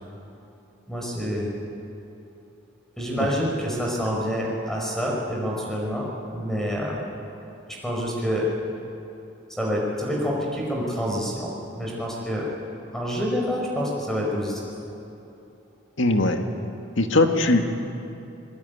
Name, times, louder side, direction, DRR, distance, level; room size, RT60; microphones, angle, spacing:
voice 1, 0.9-1.5 3.0-6.0 6.3-7.1 7.7-8.5 9.5-12.5 12.9-14.6, equal, ahead, -3 dB, 5.1 m, -27 dB
voice 2, 16.0-16.4 17.0-17.6, left 2 dB, 80° left, 5 dB, 1.9 m, -20 dB
22.0 x 21.5 x 9.4 m, 2.9 s
head